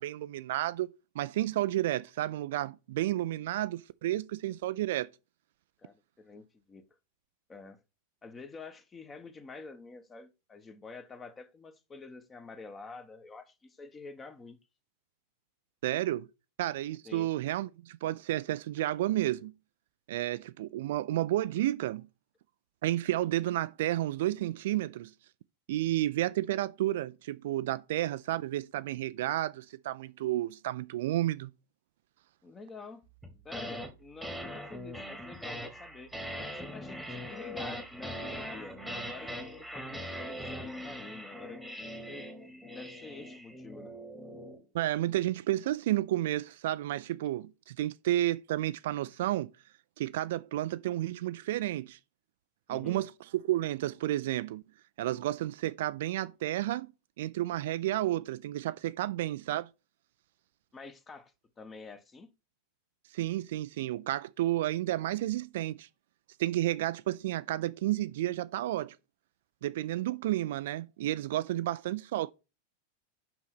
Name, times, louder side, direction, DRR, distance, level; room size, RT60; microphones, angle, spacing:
voice 1, 0.0-5.1 15.8-16.3 16.6-19.5 20.1-22.1 22.8-25.1 25.7-31.5 44.7-49.5 50.0-52.0 52.7-54.6 55.0-56.9 57.2-59.7 63.1-65.9 66.4-69.0 69.6-72.3, right 14 dB, 55° right, 0.4 m, -31 dB
voice 2, 5.8-6.9 7.5-7.8 8.2-14.6 17.0-17.3 32.4-33.0 33.4-36.1 36.5-41.6 42.1-42.3 42.6-43.9 52.7-53.1 60.7-62.3, left 4 dB, 20° left, 1.2 m, -48 dB
sound 1, 33.2-33.9 34.2-44.6, equal, ahead, 1.6 m, -41 dB
5.9 x 5.5 x 6.0 m
figure-of-eight pair, 90°, 0 cm